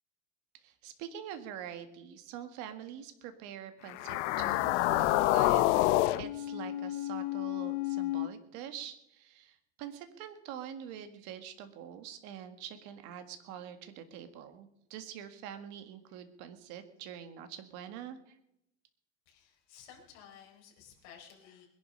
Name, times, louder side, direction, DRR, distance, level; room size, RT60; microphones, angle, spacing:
voice 1, 0.6-18.3, right 9 dB, 55° right, 9 dB, 1.8 m, -45 dB
sound 1, 3.9-8.3, left 17 dB, 80° left, 0.8 m, -28 dB
voice 2, 19.3-21.7, left 8 dB, 55° left, 0 dB, 4.4 m, -55 dB
21.0 x 11.0 x 5.4 m, 0.82 s
cardioid pair, 170°, 35 cm